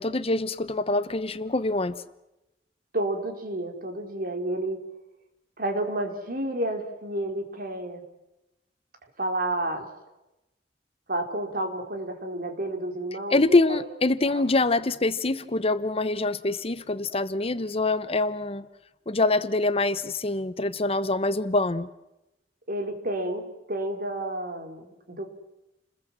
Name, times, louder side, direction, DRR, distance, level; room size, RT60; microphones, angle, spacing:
voice 1, 0.0-2.0 13.3-18.7 19.1-21.9, left 2 dB, 35° left, 13 dB, 1.0 m, -25 dB
voice 2, 2.9-4.8 5.6-8.0 9.2-9.9 11.1-13.8 14.2-14.4 22.7-25.3, right 1 dB, 55° right, 5 dB, 4.1 m, -30 dB
29.5 x 21.0 x 7.6 m, 0.93 s
head